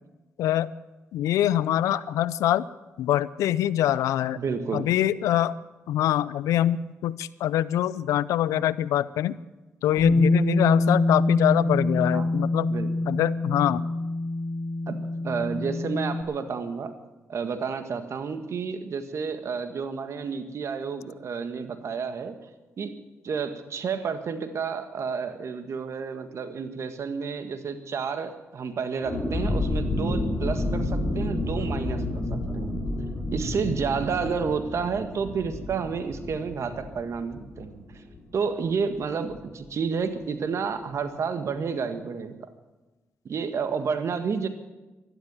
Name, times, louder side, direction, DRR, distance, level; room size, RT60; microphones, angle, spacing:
voice 1, 0.4-0.7 1.1-2.6 3.0-4.4 4.7-5.5 5.9-9.3 9.8-12.7 13.1-13.8, left 12 dB, 85° left, 19 dB, 0.5 m, -24 dB
voice 2, 4.4-4.9 12.1-12.3 12.7-12.9 14.9-15.0 15.2-16.9 17.3-22.3 22.8-22.9 23.2-32.9 33.3-38.0 38.3-42.3 43.2-44.5, right 5 dB, 60° right, 9 dB, 1.6 m, -30 dB
Bass guitar, 10.0-16.2, left 2 dB, 65° left, 2.0 m, -25 dB
sound 1, 29.0-38.4 38.7-38.8 39.1-39.4, left 1 dB, 30° left, 5.0 m, -30 dB
12.5 x 12.0 x 9.0 m, 1.1 s
supercardioid pair, 55°, 5 cm